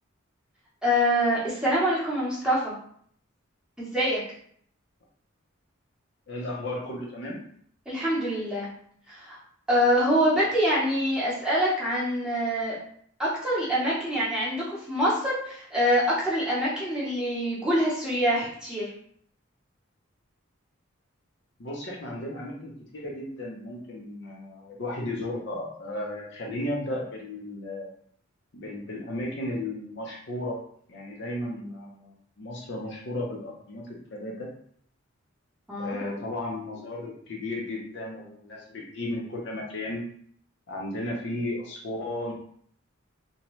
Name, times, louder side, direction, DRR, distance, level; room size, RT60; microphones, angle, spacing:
voice 1, 0.8-2.7 3.8-4.2 7.9-8.7 9.1-9.4 9.7-12.7 13.2-18.9 35.7-36.0, equal, 5° right, -8 dB, 0.8 m, -25 dB
voice 2, 6.3-7.4 21.6-27.9 28.5-30.6 30.9-34.5 35.8-40.0 40.7-42.3, left 1 dB, 55° left, -2 dB, 0.6 m, -34 dB
2.7 x 2.2 x 3.0 m, 0.62 s
head